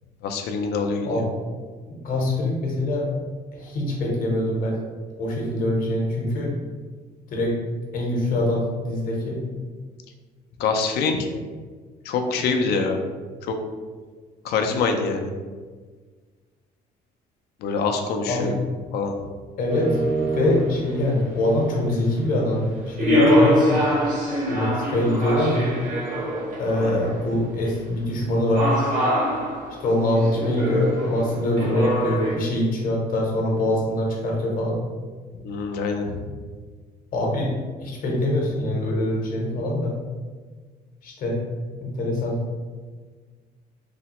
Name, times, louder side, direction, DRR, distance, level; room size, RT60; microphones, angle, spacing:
voice 1, 0.2-1.2 10.6-11.3 12.1-13.0 13.4-13.6 14.4-15.3 17.6-18.5 18.9-19.1 26.8-27.0 35.4-36.2, left 4 dB, 75° left, 4 dB, 0.4 m, -25 dB
voice 2, 1.0-1.5 2.0-3.1 3.5-4.8 5.2-6.5 7.3-7.5 7.9-9.4 18.3-18.5 19.6-20.0 20.3-23.8 24.5-25.7 26.6-28.7 29.8-34.8 37.1-37.5 37.8-39.9 41.0-41.4 41.8-42.4, left 1 dB, 55° left, -2 dB, 0.8 m, -24 dB
sound 1, 19.7-21.0 23.0-27.3 28.5-32.4, equal, 50° right, 0.9 m, -24 dB
3.3 x 2.1 x 2.9 m, 1.5 s
cardioid pair, 110°, 17 cm